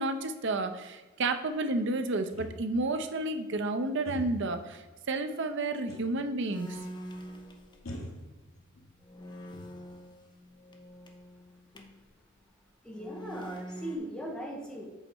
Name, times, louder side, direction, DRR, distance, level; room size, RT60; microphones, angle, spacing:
voice 1, 0.0-6.8, right 2 dB, 65° right, 7 dB, 0.7 m, -31 dB
sound 1, 2.3-3.0 4.1-4.6 5.9-6.3 6.6-6.7 7.8-8.9 9.3-10.1, equal, 80° left, 1.2 m, -43 dB
sound 2, 6.5-8.1 8.6-8.7 9.0-12.1 12.9-14.0, equal, 25° left, 0.8 m, -45 dB
voice 2, 12.8-14.8, equal, 5° left, -2 dB, 1.4 m, -39 dB
7.8 x 4.3 x 4.5 m, 1.3 s
head